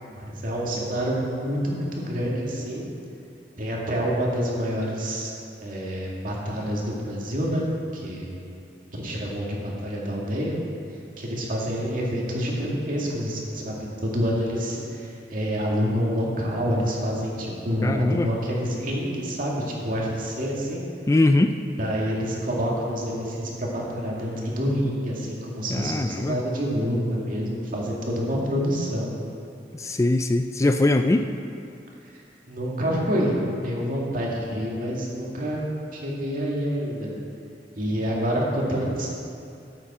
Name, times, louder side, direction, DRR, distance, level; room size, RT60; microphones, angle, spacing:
voice 1, 0.1-2.9 3.6-5.3 5.6-7.7 7.9-8.4 8.9-10.6 11.2-13.8 14.0-20.9 21.8-29.1 32.0-37.1 37.8-39.1, equal, 50° right, -3 dB, 2.2 m, -27 dB
voice 2, 17.8-18.3 21.1-21.6 25.7-26.4 29.7-31.3, left 2 dB, 15° left, 7 dB, 0.3 m, -21 dB
13.5 x 8.7 x 4.3 m, 2.5 s
head